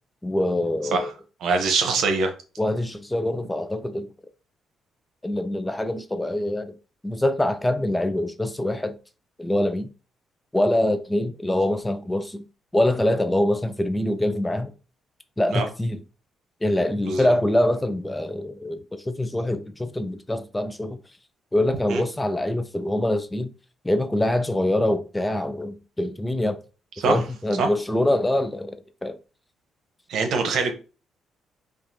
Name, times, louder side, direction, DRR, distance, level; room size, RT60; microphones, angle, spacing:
voice 1, 0.2-1.1 2.6-4.1 5.2-6.8 7.0-9.0 9.4-9.9 10.5-12.4 12.7-14.7 15.4-16.0 16.6-21.0 21.5-23.5 23.8-26.6 27.1-29.2, left 1 dB, 10° left, 0.5 m, -24 dB
voice 2, 1.4-2.3 15.5-15.7 17.0-17.3 21.9-22.0 27.0-27.2 27.6-27.7 30.1-30.7, right 4 dB, 75° right, 1.0 m, -23 dB
5.4 x 2.5 x 2.8 m
cardioid pair, 90°, 0 cm